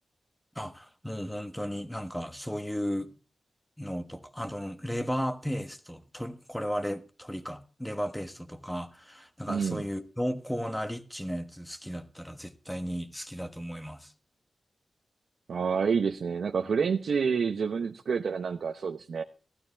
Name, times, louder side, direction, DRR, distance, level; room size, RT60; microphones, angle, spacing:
voice 1, 0.5-3.1 3.8-14.1, equal, 5° left, 1.3 m, -35 dB
voice 2, 9.5-9.9 15.5-19.2, right 6 dB, 80° right, 1.0 m, -28 dB
16.0 x 11.5 x 3.5 m
wide cardioid pair, 155°, 0 cm